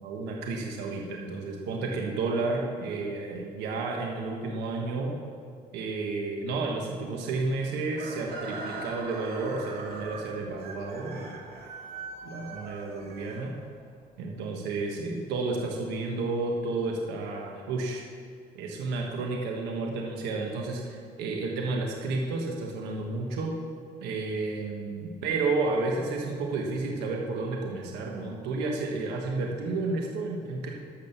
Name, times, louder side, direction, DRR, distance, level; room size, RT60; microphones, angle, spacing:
voice 1, 0.0-5.1 5.7-11.4 12.2-13.5 14.2-18.0 18.5-23.5 24.0-30.7, right 3 dB, 90° right, 0 dB, 1.4 m, -31 dB
Chicken rooster, 7.9-13.9, right 3 dB, 70° right, 1.9 m, -41 dB
11.5 x 6.3 x 6.9 m, 2.2 s
cardioid pair, 110°, 17 cm